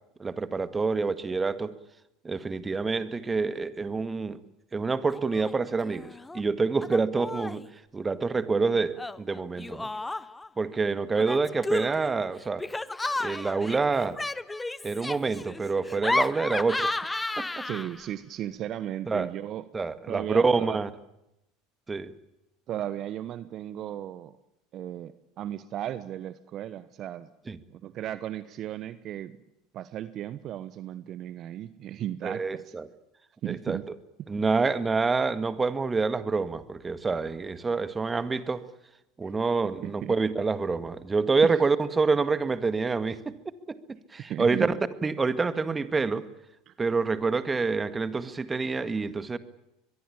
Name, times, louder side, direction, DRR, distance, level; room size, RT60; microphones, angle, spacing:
voice 1, 0.2-1.7 2.2-4.4 4.7-6.1 6.3-7.6 7.9-9.9 10.6-12.7 13.2-14.2 14.8-17.0 17.4-17.6 19.1-19.3 19.7-20.9 21.9-22.1 27.5-27.6 32.2-32.9 33.5-33.8 34.3-38.7 39.2-43.4 43.7-43.8 44.1-44.7 45.0-46.3 46.8-49.4, right 4 dB, 20° right, 12 dB, 1.9 m, -27 dB
Laughter, 5.1-5.5 5.8-6.4 6.8-7.7 9.0-10.5 11.1-18.1, left 2 dB, 10° left, 1.0 m, -33 dB
voice 2, 17.6-19.6 20.1-20.8 22.7-24.4 24.7-27.3 27.7-29.4 29.7-32.7 33.4-33.9 34.2-34.3 39.3-39.4 39.8-40.1 44.2-44.7 46.7-46.8, right 11 dB, 45° right, 15 dB, 1.1 m, -35 dB
24.0 x 22.0 x 8.7 m, 0.85 s
hypercardioid pair, 80°, 0 cm